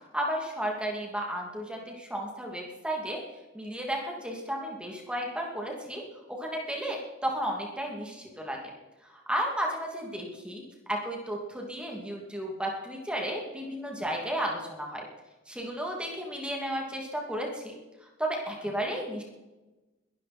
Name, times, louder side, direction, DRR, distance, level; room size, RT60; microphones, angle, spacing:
voice 1, 0.1-3.2 3.5-6.0 6.3-8.6 9.1-10.6 10.9-15.1 15.5-17.8 18.2-19.2, right 1 dB, 5° right, -1 dB, 2.7 m, -33 dB
21.5 x 12.5 x 4.4 m, 1.1 s
head